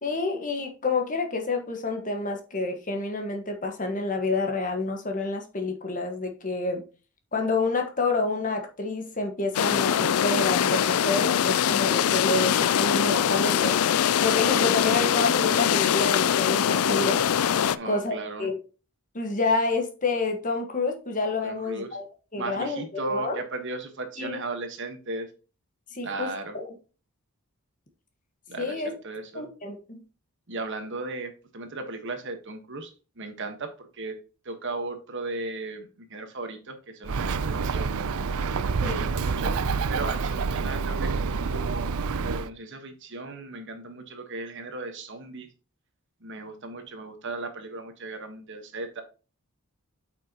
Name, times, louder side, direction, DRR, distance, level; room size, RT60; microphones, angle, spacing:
voice 1, 0.0-6.8 7.3-17.2 17.8-18.6 19.1-22.1 22.3-23.4 24.2-24.4 25.9-26.3 26.6-26.7 28.6-28.9 29.3-30.0 38.8-39.0, left 3 dB, 35° left, 1.5 m, -28 dB
sound 1, 9.5-17.8, left 9 dB, 75° left, 0.4 m, -23 dB
voice 2, 17.7-18.5 21.4-22.0 22.4-25.3 26.0-26.6 28.5-29.5 30.5-32.9 33.2-34.1 34.4-37.9 38.8-39.6 39.9-41.1 41.5-41.9 42.2-45.5 46.2-49.0, right 3 dB, 55° right, 1.4 m, -36 dB
Bird, 37.0-42.5, right 5 dB, 75° right, 0.5 m, -27 dB
8.2 x 6.0 x 2.9 m
head